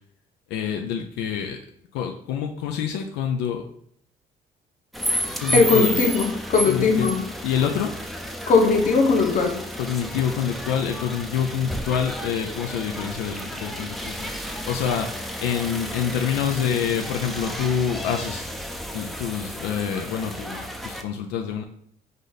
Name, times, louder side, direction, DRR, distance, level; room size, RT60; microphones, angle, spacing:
voice 1, 0.5-1.6 1.9-3.6 5.4-5.9 6.7-7.1 7.4-7.9 9.8-14.3 14.7-18.5 18.9-21.6, left 8 dB, 90° left, 3 dB, 0.4 m, -27 dB
sound 1, 4.9-21.0, equal, ahead, 0.4 m, -32 dB
voice 2, 5.5-7.2 8.5-9.5, left 4 dB, 50° left, 2 dB, 1.1 m, -19 dB
5.0 x 2.6 x 3.9 m, 0.67 s
cardioid pair, 110°, 17 cm